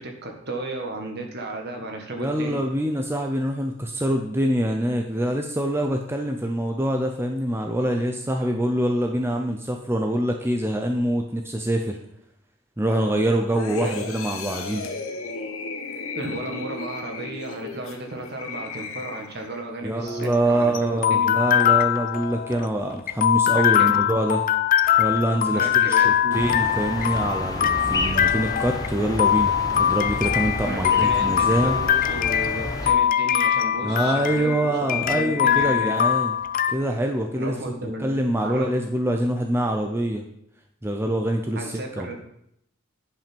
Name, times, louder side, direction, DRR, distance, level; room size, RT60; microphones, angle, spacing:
voice 1, 0.0-2.6 13.8-14.0 16.2-21.4 23.5-24.0 25.5-26.4 30.6-36.0 37.4-38.1 38.4-38.7 41.6-42.2, right 2 dB, 55° right, 2 dB, 1.7 m, -34 dB
voice 2, 2.2-12.0 12.8-14.8 19.8-24.4 25.0-30.9 31.2-31.7 33.8-36.3 36.7-37.5 38.0-40.2 40.8-42.2, right 1 dB, 10° right, 3 dB, 0.6 m, -25 dB
sound 1, 13.5-19.6 20.1-20.2, left 3 dB, 80° left, 1.2 m, -35 dB
sound 2, 20.1-36.7, left 9 dB, 40° left, 0.4 m, -22 dB
sound 3, 26.3-32.9, left 1 dB, 20° left, 1.0 m, -31 dB
10.5 x 5.5 x 5.3 m, 0.75 s
head